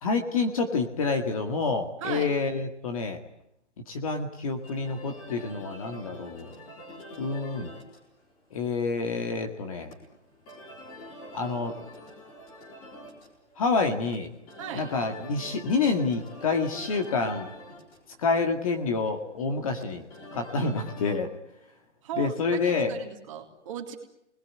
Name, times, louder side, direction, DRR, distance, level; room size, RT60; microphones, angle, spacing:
voice 1, 0.0-3.2 3.9-6.5 7.2-7.7 8.5-9.9 11.3-11.7 13.6-14.3 14.7-17.5 18.2-20.0 20.3-21.3 22.2-22.9, left 4 dB, 30° left, 5 dB, 2.0 m, -28 dB
voice 2, 2.0-2.3 14.6-14.9 22.0-22.3 22.6-24.0, right 9 dB, 25° right, 2 dB, 3.4 m, -37 dB
sound 1, 4.6-21.2, left 1 dB, 15° left, 4.1 m, -46 dB
27.0 x 21.0 x 9.8 m, 0.80 s
hypercardioid pair, 175°, 35 cm